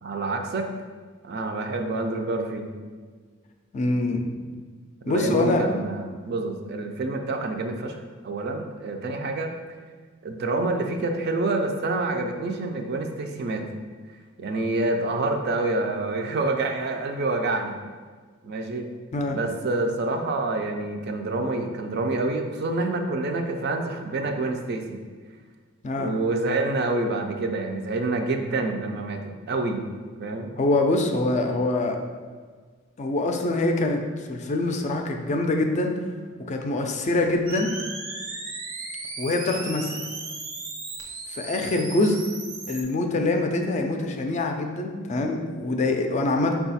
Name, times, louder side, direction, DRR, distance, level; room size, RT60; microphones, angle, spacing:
voice 1, 0.0-0.7 1.2-2.7 5.1-7.9 8.2-9.5 10.2-13.6 14.4-17.8 18.4-18.9 19.3-25.0 26.0-30.5, right 2 dB, 55° right, 4 dB, 0.4 m, -27 dB
voice 2, 3.7-4.3 5.1-5.6 19.1-19.4 25.8-26.1 30.6-32.0 33.0-34.0 34.3-35.9 36.5-37.7 39.2-40.0 41.3-42.2 42.7-46.5, left 2 dB, 35° left, 3 dB, 0.4 m, -24 dB
sound 1, 37.5-42.8, right 3 dB, 80° right, 0.8 m, -36 dB
4.9 x 2.3 x 4.0 m, 1.5 s
head